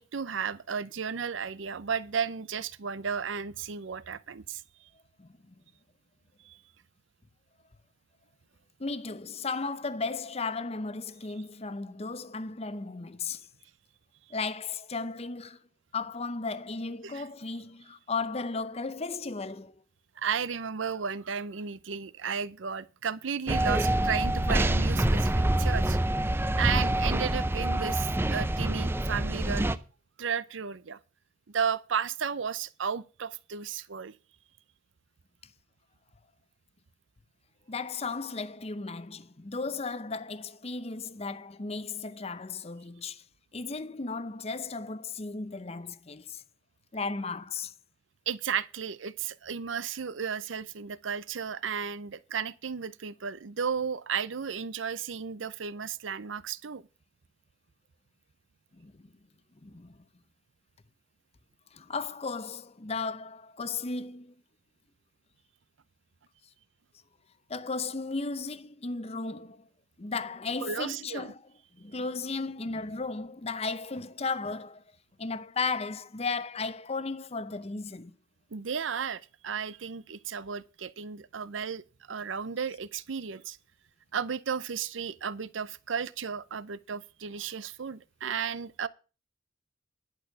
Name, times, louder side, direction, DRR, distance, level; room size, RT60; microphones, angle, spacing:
voice 1, 0.0-4.6 6.4-6.6 17.0-17.3 20.2-26.0 26.6-29.8 30.2-31.0 31.5-34.1 48.3-56.8 70.6-71.3 78.5-81.8 82.1-83.6 84.1-88.9, right 6 dB, 75° right, 0.6 m, -34 dB
voice 2, 5.2-5.5 8.8-13.4 14.3-15.6 15.9-19.7 37.7-43.2 43.5-46.4 46.9-47.7 58.8-59.1 59.6-60.0 61.7-64.3 67.5-69.6 70.0-71.4 71.8-74.8 75.2-78.1, left 4 dB, 30° left, 0.7 m, -35 dB
sound 1, 23.5-29.8, right 1 dB, 10° right, 0.5 m, -26 dB
11.5 x 6.2 x 6.7 m
head